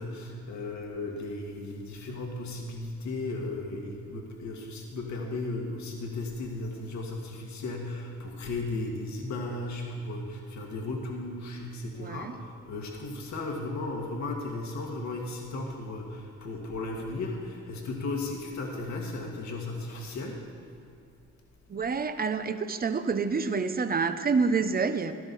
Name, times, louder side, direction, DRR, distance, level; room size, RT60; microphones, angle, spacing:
voice 1, 0.0-12.3 12.7-20.4, left 2 dB, 65° left, 0 dB, 1.9 m, -35 dB
voice 2, 12.0-12.4 21.7-25.1, right 5 dB, 30° right, 10 dB, 0.8 m, -28 dB
16.0 x 12.0 x 4.1 m, 2.6 s
cardioid pair, 90°, 30 cm